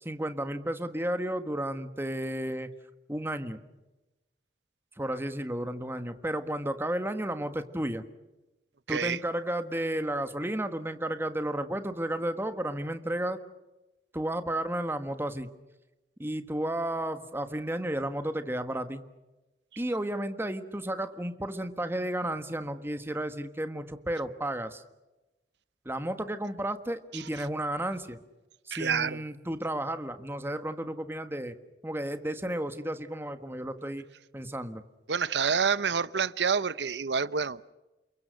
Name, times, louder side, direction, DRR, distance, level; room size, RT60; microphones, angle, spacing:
voice 1, 0.0-2.7 3.1-3.6 5.0-8.0 8.9-13.4 14.1-15.5 16.2-19.0 19.8-24.8 25.8-28.2 28.7-31.5 31.8-34.1 34.3-34.8, right 1 dB, 15° right, 1.4 m, -32 dB
voice 2, 8.9-9.2 27.1-27.2 28.7-29.2 35.1-37.7, right 6 dB, 80° right, 0.8 m, -28 dB
29.0 x 23.0 x 6.5 m
head